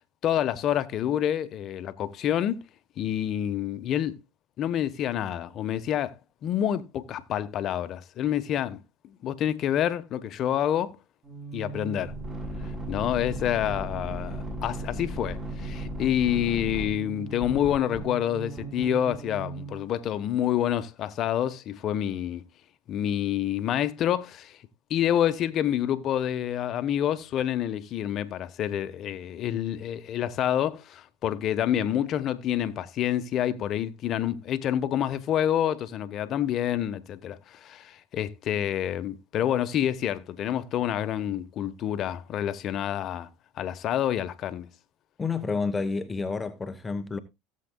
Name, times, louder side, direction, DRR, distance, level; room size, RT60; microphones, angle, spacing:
voice 1, 0.2-2.6 3.0-4.2 4.6-6.2 6.4-8.8 9.0-11.0 11.5-12.1 12.9-22.4 22.9-24.6 24.9-43.3 43.6-44.7, left 10 dB, 50° left, 1.1 m, -28 dB
sound 1, 11.2-19.8, right 2 dB, 25° right, 6.6 m, -36 dB
voice 2, 45.2-47.2, left 4 dB, 20° left, 1.0 m, -29 dB
17.0 x 7.6 x 2.3 m
hypercardioid pair, 85°, 0 cm